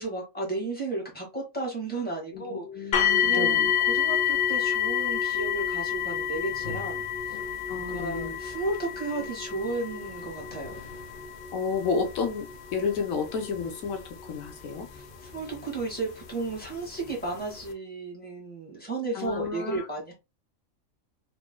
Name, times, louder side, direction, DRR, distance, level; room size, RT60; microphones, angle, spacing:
voice 1, 0.0-7.0 7.3-7.5 7.7-10.8 14.9-20.1, right 3 dB, 5° left, 1.8 m, -34 dB
voice 2, 2.3-3.7 7.7-8.4 11.5-12.5 12.7-14.0 14.3-14.9 19.1-19.9, left 5 dB, 90° left, 1.3 m, -31 dB
sound 1, 2.9-15.8 16.6-16.7 17.3-17.4, left 9 dB, 60° left, 0.6 m, -29 dB
4.0 x 3.1 x 2.2 m
omnidirectional pair, 1.4 m